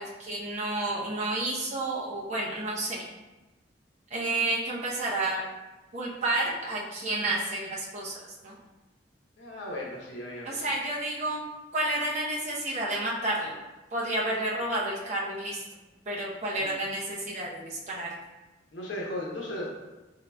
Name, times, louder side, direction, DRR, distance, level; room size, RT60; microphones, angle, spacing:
voice 1, 0.0-3.0 4.1-5.4 5.9-8.2 8.4-8.6 10.4-11.4 11.7-13.6 13.9-15.8 16.1-18.1, right 2 dB, 40° right, -5 dB, 0.8 m, -30 dB
voice 2, 9.4-10.6 16.6-16.7 18.7-19.7, left 1 dB, 85° left, -3 dB, 0.9 m, -36 dB
3.8 x 3.8 x 2.3 m, 1.1 s
head